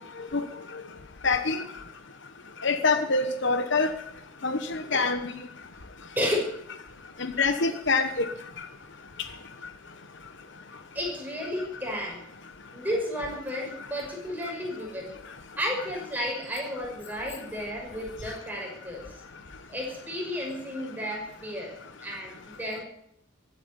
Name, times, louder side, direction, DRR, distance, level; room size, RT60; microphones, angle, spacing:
voice 1, 1.2-1.6 2.6-3.9 4.4-5.3 7.2-8.3, left 4 dB, 60° left, 9 dB, 1.1 m, -25 dB
voice 2, 6.2-6.5 10.9-12.2 12.7-15.1 15.6-19.2 19.7-21.7 22.0-22.8, equal, 10° right, -1 dB, 5.8 m, -32 dB
15.5 x 9.3 x 9.7 m, 0.73 s
head